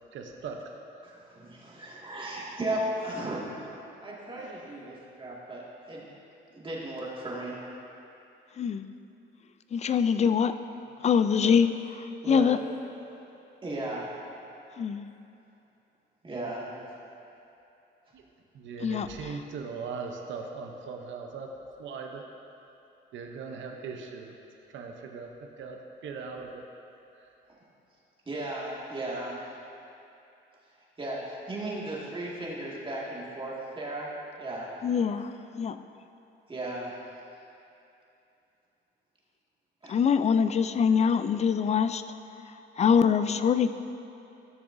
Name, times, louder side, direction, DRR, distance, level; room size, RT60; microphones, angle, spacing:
voice 1, 0.1-0.6 3.2-3.3 3.8-3.9 4.3-5.0 18.1-18.2 18.5-21.5 21.8-22.2 23.1-24.3 24.7-25.3 25.6-26.6, right 5 dB, 70° right, 2 dB, 0.8 m, -39 dB
voice 2, 1.0-3.6 4.0-6.1 6.5-7.6 11.4-11.5 12.2-12.6 13.6-14.1 16.2-16.7 28.3-29.4 31.0-34.1 34.4-34.7 36.5-36.9 39.8-40.0, right 1 dB, 25° right, -6 dB, 2.0 m, -35 dB
voice 3, 9.7-10.6 11.0-12.6 14.8-15.0 18.8-19.3 34.8-35.8 39.9-42.0 42.8-43.8, left 7 dB, 35° left, 11 dB, 0.4 m, -24 dB
13.5 x 6.6 x 2.7 m, 2.8 s
cardioid pair, 90°, 20 cm